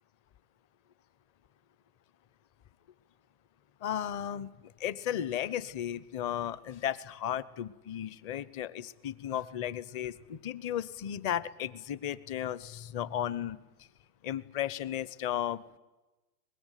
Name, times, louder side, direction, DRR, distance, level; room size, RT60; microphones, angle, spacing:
voice 1, 3.8-4.5 4.8-13.6 14.2-15.8, left 10 dB, 30° left, 18 dB, 1.0 m, -35 dB
23.5 x 21.0 x 9.3 m, 1.1 s
hypercardioid pair, 130°, 47 cm